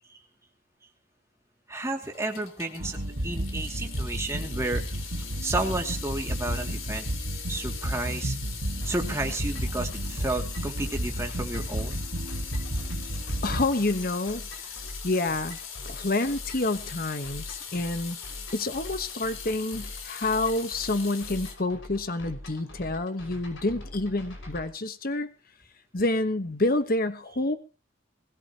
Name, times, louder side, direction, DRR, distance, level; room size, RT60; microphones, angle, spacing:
voice 1, 1.7-5.1 5.4-7.1 7.5-8.4 8.9-12.0, right 2 dB, 15° right, 2 dB, 2.6 m, -32 dB
Water tap faucet / Sink (filling or washing) / Drip, 1.9-21.5, left 7 dB, 85° left, 3.3 m, -41 dB
sound 1, 2.8-13.6, right 1 dB, 65° right, 1.6 m, -32 dB
sound 2, 8.8-24.7, left 1 dB, 70° left, 5.9 m, -44 dB
voice 2, 13.4-14.4 15.0-15.6 15.8-18.2 18.5-25.3 25.9-27.6, left 2 dB, 45° left, 10 dB, 1.2 m, -28 dB
21.0 x 17.0 x 3.0 m, 0.34 s
head